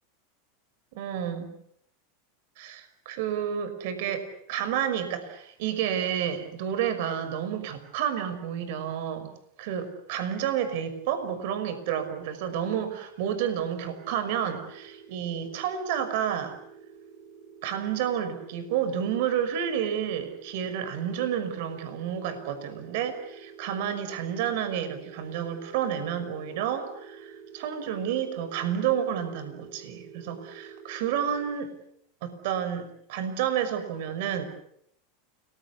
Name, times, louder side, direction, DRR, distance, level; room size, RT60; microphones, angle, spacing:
voice 1, 0.9-1.5 2.6-9.3 9.6-16.6 17.6-31.7 32.2-34.4, right 9 dB, 70° right, 11 dB, 5.7 m, -30 dB
sound 1, 13.8-31.6, right 6 dB, 35° right, 4.4 m, -49 dB
30.0 x 22.0 x 8.5 m, 0.73 s
supercardioid pair, 120°, 0 cm